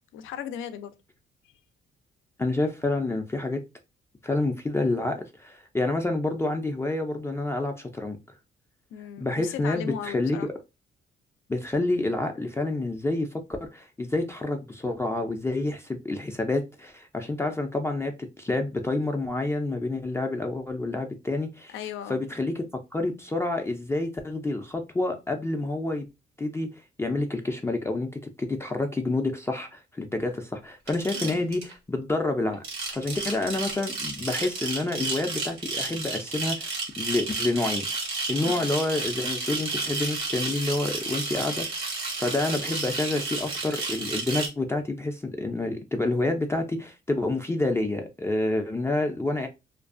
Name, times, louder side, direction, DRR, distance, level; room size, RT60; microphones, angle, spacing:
voice 1, 0.1-0.9 8.9-10.5 21.7-22.2 31.1-31.4 38.4-38.6, left 9 dB, 85° left, 0.4 m, -37 dB
voice 2, 2.4-3.6 4.2-8.2 9.2-10.5 11.5-21.7 22.1-22.6 22.9-26.0 26.4-26.7 27.0-28.1 28.4-32.6 32.9-37.9 38.3-41.9 42.2-49.5, left 2 dB, 15° left, 0.3 m, -28 dB
sound 1, 30.9-31.7 32.5-44.5, right 3 dB, 85° right, 1.3 m, -32 dB
2.5 x 2.3 x 2.4 m
cardioid pair, 90°, 20 cm